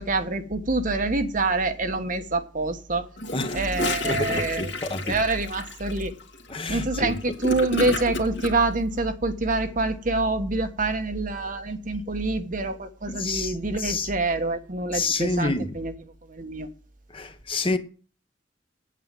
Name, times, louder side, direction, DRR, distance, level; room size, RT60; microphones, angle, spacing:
voice 1, 0.0-3.1 3.5-4.7 5.0-6.1 6.7-15.9 16.2-16.7, right 2 dB, 45° right, 1.2 m, -26 dB
Gurgling / Toilet flush, 3.2-8.5, left 2 dB, 65° left, 2.2 m, -31 dB
voice 2, 3.3-3.6 4.0-5.2 6.5-7.2 13.1-13.5 13.8-14.1 14.9-15.7 17.1-17.8, left 3 dB, 30° left, 1.2 m, -28 dB
8.9 x 8.5 x 7.5 m
head